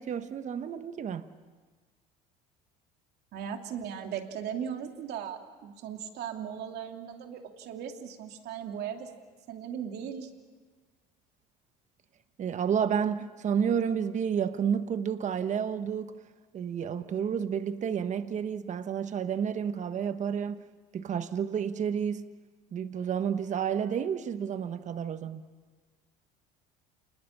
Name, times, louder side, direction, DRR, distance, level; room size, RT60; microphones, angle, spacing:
voice 1, 0.0-1.3 12.4-16.2 16.5-20.6 20.9-22.3 22.7-25.4, right 7 dB, 40° right, 1.2 m, -30 dB
voice 2, 3.3-9.1 9.5-10.3, right 8 dB, 60° right, 2.8 m, -38 dB
28.5 x 20.5 x 7.3 m
supercardioid pair, 95°, 19 cm